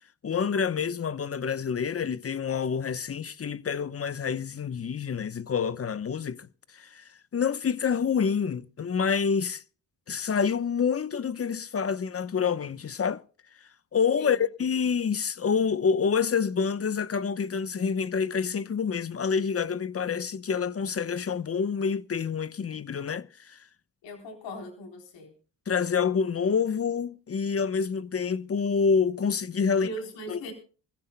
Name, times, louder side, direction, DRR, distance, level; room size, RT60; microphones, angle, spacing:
voice 1, 0.2-6.5 6.7-9.6 10.1-13.2 13.9-23.6 25.7-29.9 30.3-30.5, left 6 dB, 35° left, 0.9 m, -27 dB
voice 2, 24.0-25.3 29.7-30.5, equal, 90° left, 3.9 m, -39 dB
25.0 x 15.0 x 2.2 m
supercardioid pair, 65°, 43 cm